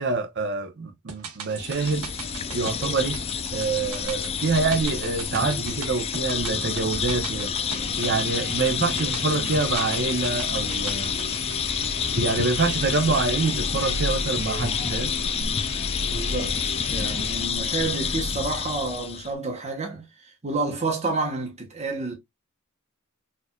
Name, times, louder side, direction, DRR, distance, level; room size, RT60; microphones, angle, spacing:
voice 1, 0.0-2.1 2.5-3.2 3.5-7.5 7.9-11.1 12.2-15.1, right 4 dB, 55° right, 0.7 m, -26 dB
sound 1, 1.1-13.4 13.7-13.8, right 6 dB, 90° right, 0.9 m, -40 dB
sound 2, 1.5-19.3, left 6 dB, 30° left, 0.3 m, -28 dB
sound 3, 7.7-17.5, left 5 dB, 80° left, 1.0 m, -36 dB
voice 2, 16.0-22.1, right 3 dB, 30° right, 1.0 m, -29 dB
4.3 x 2.6 x 2.2 m
head